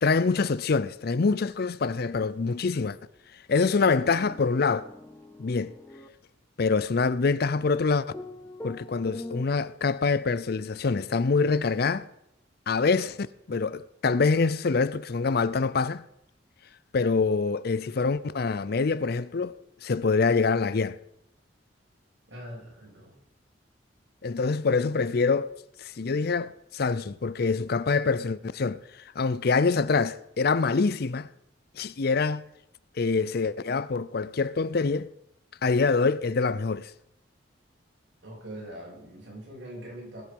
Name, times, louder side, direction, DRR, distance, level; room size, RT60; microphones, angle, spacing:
voice 1, 0.0-3.0 3.5-4.9 5.4-5.7 6.6-8.1 8.6-12.1 12.7-13.2 13.5-16.0 16.9-21.0 24.2-25.5 25.8-31.3 31.8-32.4 33.0-35.1 35.6-36.9, left 4 dB, 55° left, 0.5 m, -25 dB
sound 1, 3.8-6.1 8.1-9.4, left 1 dB, 10° left, 0.8 m, -42 dB
voice 2, 22.3-23.1 38.2-40.2, right 1 dB, 65° right, 6.8 m, -42 dB
20.5 x 7.8 x 5.3 m
head